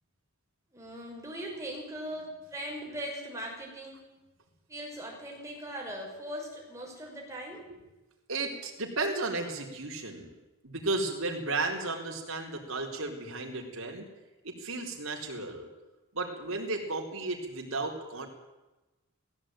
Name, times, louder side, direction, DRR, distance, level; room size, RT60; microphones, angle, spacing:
voice 1, 0.7-4.0 4.7-7.6, equal, 15° right, -2 dB, 6.4 m, -40 dB
voice 2, 8.3-10.3 10.6-14.1 14.4-15.7 16.1-18.3, right 3 dB, 75° right, 1 dB, 4.3 m, -34 dB
18.0 x 16.0 x 9.1 m, 1.1 s
head